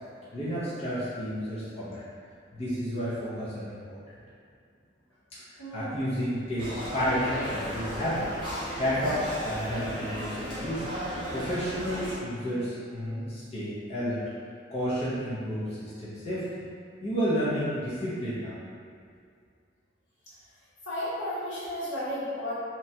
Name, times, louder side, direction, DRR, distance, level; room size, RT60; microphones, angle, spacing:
voice 1, 0.3-2.0 2.5-4.0 5.5-8.2 8.8-10.8 11.3-14.2 14.7-16.5 17.0-18.6, equal, 35° left, -11 dB, 0.6 m, -31 dB
voice 2, 5.6-6.0 20.3-20.4 20.8-22.6, left 1 dB, 70° left, -9 dB, 0.9 m, -33 dB
sound 1, 6.6-12.2, equal, 25° right, 0.9 m, -35 dB
2.9 x 2.2 x 2.7 m, 2.3 s
head